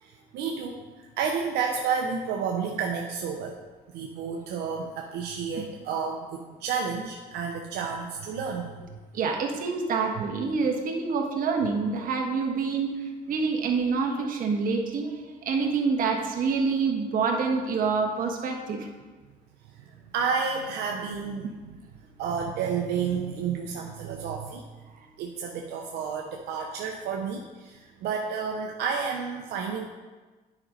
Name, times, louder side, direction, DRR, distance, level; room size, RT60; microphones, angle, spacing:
voice 1, 0.0-3.6 3.9-9.0 19.8-21.8 22.2-24.6 25.2-29.8, right 6 dB, 80° right, 1 dB, 0.8 m, -31 dB
voice 2, 9.1-12.9 13.3-15.1 15.4-18.9, right 5 dB, 55° right, 2 dB, 1.4 m, -26 dB
9.7 x 5.2 x 4.2 m, 1.3 s
cardioid pair, 110°, 17 cm